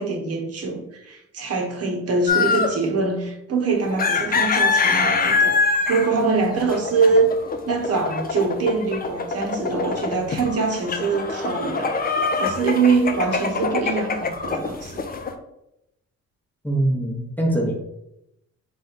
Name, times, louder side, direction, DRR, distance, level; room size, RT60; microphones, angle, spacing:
voice 1, 0.0-7.3 7.7-15.1, right 4 dB, 55° right, 1.0 m, -23 dB
sound 1, 2.3-2.8 3.8-15.3, left 4 dB, 30° left, 0.5 m, -24 dB
voice 2, 16.6-17.7, right 1 dB, 5° left, 0.9 m, -22 dB
3.5 x 3.3 x 4.0 m
cardioid pair, 90°, 30 cm